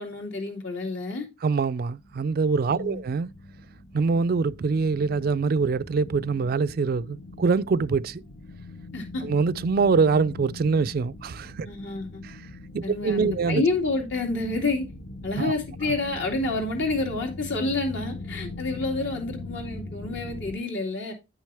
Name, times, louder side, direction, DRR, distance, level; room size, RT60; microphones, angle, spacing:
voice 1, 0.0-1.3 2.7-3.0 8.9-9.2 11.7-12.2 12.8-14.8 15.2-21.1, left 3 dB, 75° left, 2.5 m, -29 dB
voice 2, 1.4-3.3 3.9-8.2 9.2-11.7 12.2-12.4 12.7-13.6 15.4-15.5, right 4 dB, 55° right, 0.4 m, -24 dB
sound 1, 2.0-20.6, left 2 dB, 55° left, 1.1 m, -41 dB
9.5 x 6.3 x 3.4 m
head